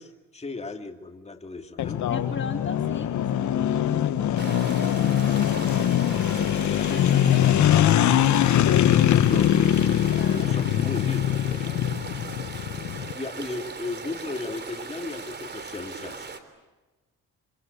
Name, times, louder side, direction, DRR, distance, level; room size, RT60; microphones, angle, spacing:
voice 1, 0.0-2.0 9.0-9.7 10.3-11.9 13.1-16.3, left 3 dB, 20° left, 5 dB, 2.7 m, -36 dB
sound 1, 1.8-13.1, left 11 dB, 70° left, 1.3 m, -22 dB
voice 2, 2.1-4.8 5.0-5.7 6.4-9.2 9.9-10.9, left 5 dB, 40° left, 5 dB, 2.3 m, -37 dB
sound 2, 4.4-16.4, right 4 dB, 35° right, 3.5 m, -38 dB
26.5 x 26.5 x 8.4 m, 1.2 s
cardioid pair, 90°, 30 cm